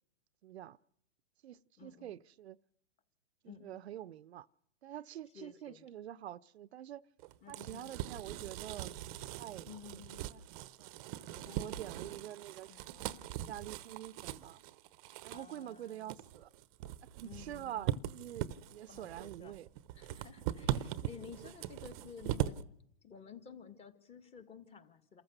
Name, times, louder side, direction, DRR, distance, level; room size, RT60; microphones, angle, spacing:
voice 1, 0.4-0.8 1.4-2.6 3.4-4.5 4.8-7.0 7.5-8.9 9.4-9.7 9.9-10.0 10.3-10.9 11.5-13.0 13.3-14.6 15.2-16.5 17.0-19.7, right 12 dB, 70° right, 0.7 m, -46 dB
voice 2, 1.8-2.1 3.4-3.8 5.3-5.9 7.4-7.9 9.7-10.4 11.3-12.2 12.7-13.1 15.3-16.1 17.2-18.0 18.9-19.6 19.9-22.6 23.0-25.2, left 7 dB, 20° left, 1.9 m, -53 dB
sound 1, 7.2-22.6, right 12 dB, 30° right, 0.8 m, -41 dB
28.5 x 14.5 x 6.7 m
hypercardioid pair, 145°, 34 cm